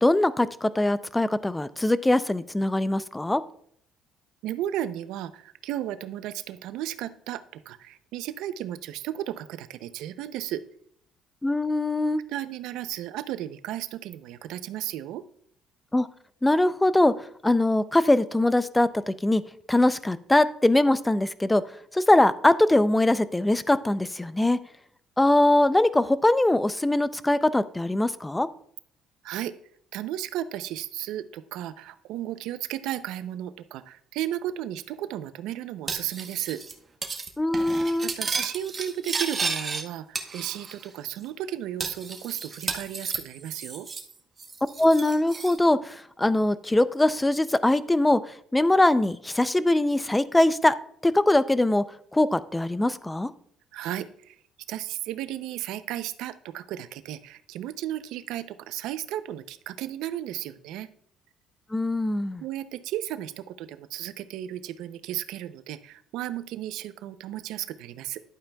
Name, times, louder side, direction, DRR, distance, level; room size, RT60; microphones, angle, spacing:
voice 1, 0.0-3.4 11.4-12.2 15.9-16.1 16.4-17.1 17.4-19.4 19.7-21.6 21.9-24.6 25.2-28.5 37.4-38.1 44.8-48.2 48.5-50.7 51.0-51.8 52.1-53.3 61.7-62.4, left 1 dB, 10° left, 15 dB, 0.4 m, -22 dB
voice 2, 4.4-10.6 12.3-15.2 29.2-29.5 29.9-36.6 38.0-43.9 53.7-54.4 54.7-60.9 62.4-68.2, right 12 dB, 80° right, 13 dB, 0.5 m, -34 dB
Cutlery silverware, 35.9-36.7 37.0-37.3 37.5-39.8 40.2-40.9 41.2-41.3 41.8-44.1 44.4-45.6, right 4 dB, 25° right, 1.0 m, -33 dB
11.0 x 8.7 x 2.3 m, 0.64 s
cardioid pair, 130°, 0 cm